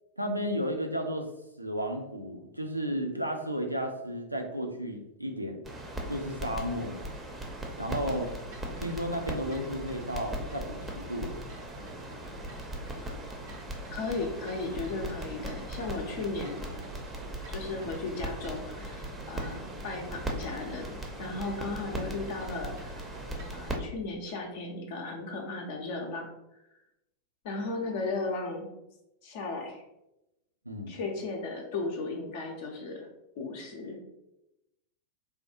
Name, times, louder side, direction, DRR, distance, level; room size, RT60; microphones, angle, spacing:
voice 1, 0.2-1.3 1.6-5.7 6.1-7.1 7.8-8.3 8.8-11.4 30.7-31.0, equal, 85° right, 3 dB, 0.4 m, -33 dB
sound 1, 5.6-23.7, right 1 dB, 15° right, 0.5 m, -39 dB
sound 2, 7.8-23.6, right 3 dB, 55° right, 0.7 m, -49 dB
voice 2, 13.9-16.6 17.5-23.1 23.5-26.3 26.5-26.6 27.4-28.7 29.2-29.8 30.9-33.1 33.4-34.0, left 3 dB, 50° left, 1 dB, 0.5 m, -36 dB
3.3 x 2.2 x 2.8 m, 0.89 s
figure-of-eight pair, 90°, 0 cm